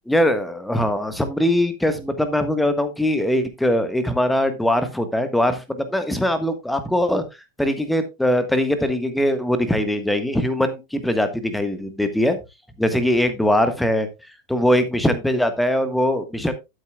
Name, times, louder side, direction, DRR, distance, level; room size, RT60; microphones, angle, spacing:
voice 1, 0.1-7.2 7.6-12.4 12.8-14.1 14.5-16.5, left 1 dB, 5° left, 9 dB, 1.4 m, -21 dB
12.0 x 8.9 x 2.3 m, 0.23 s
figure-of-eight pair, 90°, 0 cm